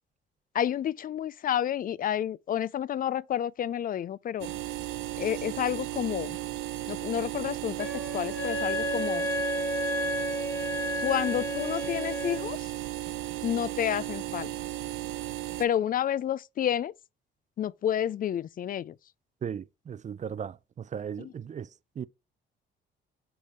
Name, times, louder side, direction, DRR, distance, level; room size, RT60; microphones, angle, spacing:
voice 1, 0.5-4.5 5.2-6.4 6.9-7.9 8.1-9.3 11.0-12.6 13.4-14.5 15.6-16.9 17.6-18.9 21.2-21.3, left 10 dB, 45° left, 0.4 m, -30 dB
sound 1, 4.4-15.7, right 15 dB, 90° right, 0.8 m, -35 dB
Wind instrument woodwind instrument, 7.8-12.4, left 1 dB, 10° left, 2.3 m, -32 dB
voice 2, 19.4-21.7 22.0-22.1, right 8 dB, 40° right, 0.5 m, -37 dB
8.5 x 3.7 x 4.2 m
cardioid pair, 90°, 20 cm